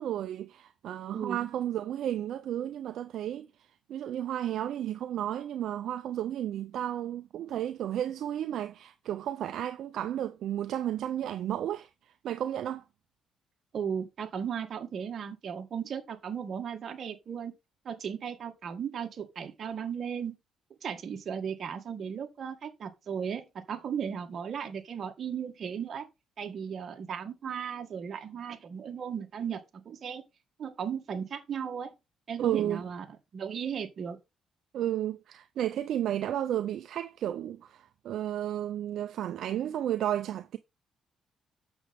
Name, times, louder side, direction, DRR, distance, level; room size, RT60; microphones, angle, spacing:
voice 1, 0.0-3.5 3.9-12.8 32.4-32.8 34.7-40.6, right 11 dB, 75° right, 0.6 m, -33 dB
voice 2, 1.1-1.5 13.7-17.5 17.8-20.4 20.8-26.1 26.4-30.2 30.6-31.9 32.3-34.2, right 7 dB, 55° right, 1.8 m, -36 dB
8.1 x 7.0 x 3.6 m
cardioid pair, 90°, 0 cm